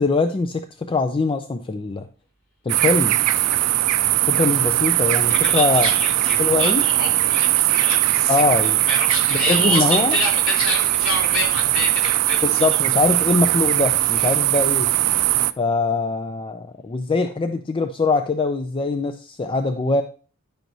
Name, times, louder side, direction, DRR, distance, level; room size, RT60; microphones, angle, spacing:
voice 1, 0.0-2.0 2.6-3.2 4.3-5.9 6.4-6.8 8.3-8.8 9.5-10.2 12.4-14.9 15.6-20.0, left 3 dB, 25° left, 7 dB, 0.4 m, -22 dB
sound 1, 2.7-15.5, right 15 dB, 90° right, 0.4 m, -20 dB
voice 2, 5.3-12.6 14.2-14.3, left 1 dB, 65° left, -3 dB, 3.0 m, -27 dB
10.5 x 6.1 x 2.7 m, 0.39 s
head